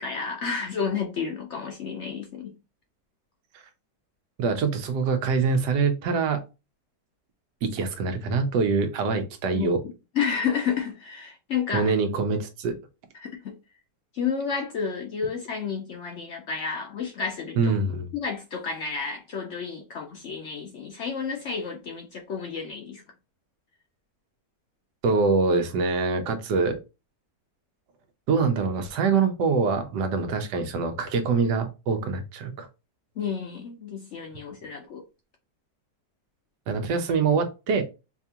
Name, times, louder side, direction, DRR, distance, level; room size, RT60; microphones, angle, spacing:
voice 1, 0.0-2.5 9.5-12.0 13.1-13.5 14.1-17.8 18.1-23.0 33.2-35.0, left 6 dB, 65° left, 0.7 m, -31 dB
voice 2, 4.4-6.4 7.6-9.8 11.7-12.8 17.6-18.1 25.0-26.8 28.3-32.7 36.7-37.8, right 4 dB, 90° right, 1.4 m, -24 dB
5.0 x 2.4 x 2.8 m
omnidirectional pair, 1.8 m